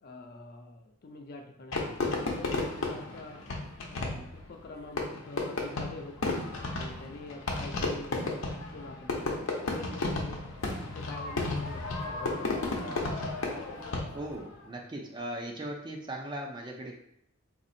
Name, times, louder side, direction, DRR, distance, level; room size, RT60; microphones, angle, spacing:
voice 1, 0.0-3.4 3.9-9.3 9.6-10.4 10.8-13.2 13.5-14.0 14.4-14.5, left 2 dB, 45° left, 3 dB, 0.4 m, -46 dB
Fireworks, 1.7-14.4, left 2 dB, 80° left, 0.7 m, -33 dB
voice 2, 14.1-16.9, right 1 dB, 20° right, 1 dB, 0.4 m, -38 dB
4.1 x 2.6 x 2.6 m, 0.72 s
head